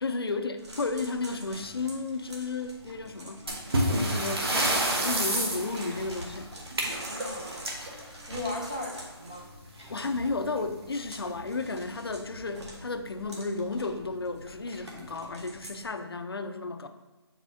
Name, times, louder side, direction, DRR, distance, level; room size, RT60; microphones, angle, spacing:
voice 1, 0.0-3.5 3.9-4.5 5.0-6.5 9.9-16.9, left 3 dB, 60° left, 8 dB, 0.5 m, -33 dB
sound 1, 0.6-15.9, right 1 dB, 80° right, 1.7 m, -47 dB
voice 2, 3.5-4.3 4.8-5.1 7.0-9.5, left 2 dB, 15° right, -4 dB, 0.4 m, -39 dB
sound 2, 3.5-8.9 10.1-10.3 10.6-10.7 11.3-11.4 12.1-12.4, right 1 dB, 65° right, 1.2 m, -29 dB
7.4 x 4.9 x 2.7 m, 1.2 s
hypercardioid pair, 180°, 14 cm